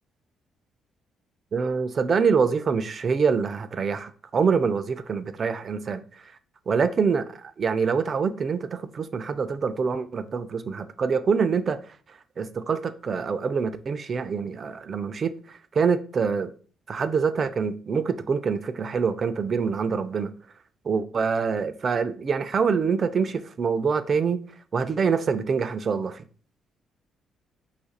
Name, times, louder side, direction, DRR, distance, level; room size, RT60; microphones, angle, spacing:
voice 1, 1.5-6.0 6.7-11.8 12.4-16.5 16.9-20.3 20.9-24.4 24.7-26.2, right 5 dB, 45° right, 0.3 m, -25 dB
2.8 x 2.4 x 4.1 m
cardioid pair, 90°, 0 cm